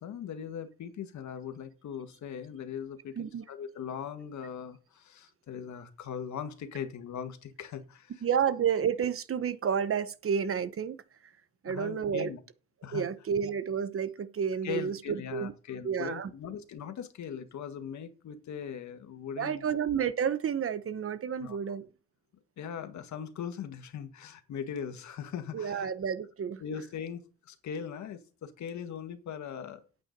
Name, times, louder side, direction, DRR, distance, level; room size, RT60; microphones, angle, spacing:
voice 1, 0.0-8.1 11.7-12.4 12.8-13.1 14.6-19.8 21.4-21.6 22.6-25.9 26.6-30.0, left 7 dB, 70° left, 1.9 m, -40 dB
voice 2, 8.2-11.0 11.6-12.3 12.9-15.5 15.8-16.3 19.4-21.8 25.5-26.6, right 7 dB, 45° right, 1.1 m, -30 dB
9.1 x 8.4 x 5.4 m
cardioid pair, 90°, 30 cm